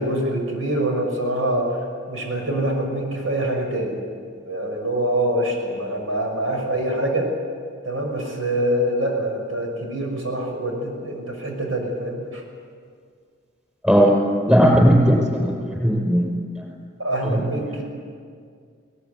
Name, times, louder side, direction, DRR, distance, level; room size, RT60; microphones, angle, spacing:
voice 1, 0.0-1.8 2.1-4.0 4.4-7.3 7.8-12.4 17.0-17.8, right 1 dB, 90° right, 1 dB, 6.5 m, -25 dB
voice 2, 13.8-14.2 14.5-16.6 17.2-17.4, equal, 5° right, -1 dB, 5.9 m, -17 dB
21.5 x 20.0 x 9.8 m, 2.1 s
head